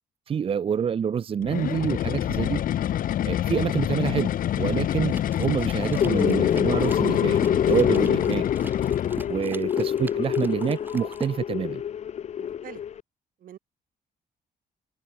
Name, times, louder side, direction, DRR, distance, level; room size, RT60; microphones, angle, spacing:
voice 1, 0.3-2.6 3.3-7.4 7.7-8.4 9.3-11.8, right 7 dB, 40° right, 0.8 m, -27 dB
sound 1, 1.4-9.5, left 11 dB, 70° left, 1.3 m, -27 dB
sound 2, 5.1-11.3, right 2 dB, 15° right, 1.2 m, -40 dB
sound 3, 5.8-13.0, left 9 dB, 50° left, 0.9 m, -26 dB
voice 2, 9.2-9.6 12.4-12.8 13.4-13.6, right 11 dB, 70° right, 3.2 m, -47 dB
open air
cardioid pair, 160°, 15 cm